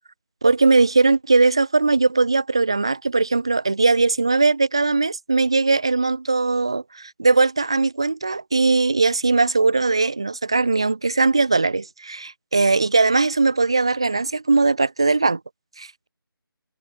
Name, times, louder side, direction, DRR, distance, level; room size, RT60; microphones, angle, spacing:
voice 1, 0.4-15.4 15.8-16.1, right 3 dB, 15° right, 0.4 m, -19 dB
figure-of-eight pair, 175°, 12 cm